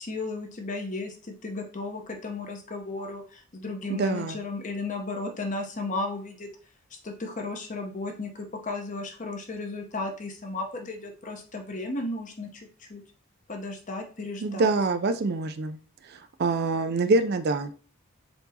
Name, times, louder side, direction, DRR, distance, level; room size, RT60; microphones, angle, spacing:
voice 1, 0.0-6.5 7.0-13.0 13.5-14.7, left 3 dB, 35° left, 3 dB, 0.7 m, -34 dB
voice 2, 3.9-4.4 14.4-15.8 16.4-17.7, right 3 dB, 45° right, 9 dB, 0.3 m, -25 dB
4.4 x 4.1 x 2.7 m, 0.42 s
head